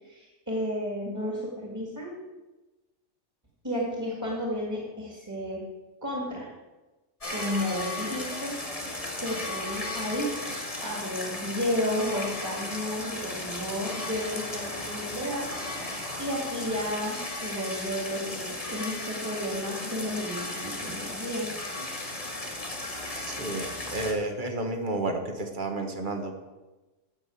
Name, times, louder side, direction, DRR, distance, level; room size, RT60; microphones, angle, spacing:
voice 1, 0.0-2.1 3.6-5.6 6.0-6.5 7.3-8.6 9.0-15.5 16.2-21.5, equal, 15° right, -2 dB, 2.0 m, -32 dB
sound 1, 7.2-24.1, left 2 dB, 30° left, 1.6 m, -35 dB
voice 2, 23.2-26.4, right 2 dB, 40° right, 4 dB, 1.4 m, -31 dB
8.9 x 6.1 x 8.4 m, 1.1 s
omnidirectional pair, 1.3 m